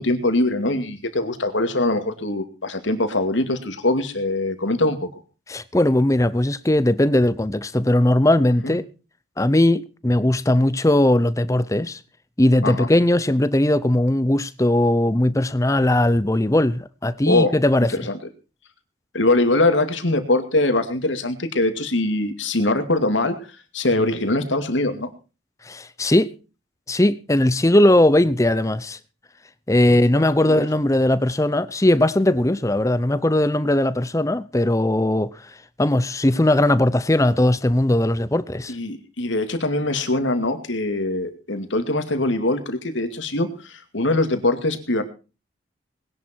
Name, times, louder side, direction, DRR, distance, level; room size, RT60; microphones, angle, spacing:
voice 1, 0.0-5.1 8.6-8.7 12.6-12.9 17.3-17.5 17.9-18.2 19.1-23.4 23.7-25.1 29.9-30.2 30.6-30.7 38.7-45.0, left 2 dB, 85° left, 2.5 m, -22 dB
voice 2, 5.5-8.8 9.4-12.0 12.4-17.9 25.7-26.3 26.9-29.0 29.7-35.3 35.8-38.7, left 1 dB, 15° left, 0.6 m, -19 dB
20.0 x 11.0 x 4.5 m
head